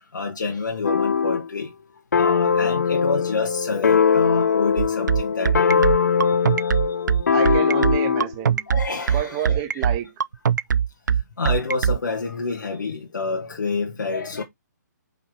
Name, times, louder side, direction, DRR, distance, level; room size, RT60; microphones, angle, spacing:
voice 1, 0.1-1.7 2.2-5.9 6.6-6.7 7.2-7.3 8.7-9.8 11.4-14.4, left 4 dB, 80° left, 2.0 m, -28 dB
sound 1, 0.8-1.5 2.1-8.3, left 6 dB, 60° left, 0.8 m, -21 dB
sound 2, 4.8-12.0, right 7 dB, 70° right, 0.5 m, -20 dB
voice 2, 7.3-8.6 9.1-10.1, right 11 dB, 10° right, 0.4 m, -29 dB
5.7 x 4.5 x 5.1 m
hypercardioid pair, 175°, 10 cm